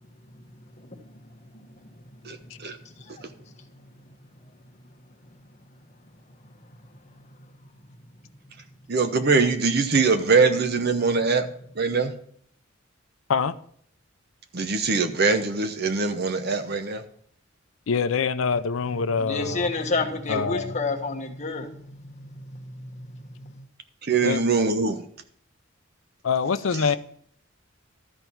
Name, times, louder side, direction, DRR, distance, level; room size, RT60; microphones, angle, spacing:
voice 1, 0.2-1.9 2.2-4.1 4.8-4.9 5.3-5.4 5.8-5.9 6.8-7.3 11.0-11.2 19.2-23.7, left 3 dB, 35° left, 1.3 m, -33 dB
voice 2, 8.9-11.5 11.8-12.1 14.5-17.0 24.1-25.0, right 4 dB, 55° right, 0.9 m, -22 dB
voice 3, 17.9-19.7 20.3-20.7 24.2-24.4 26.2-27.0, left 5 dB, 90° left, 0.5 m, -25 dB
13.0 x 4.5 x 7.0 m
head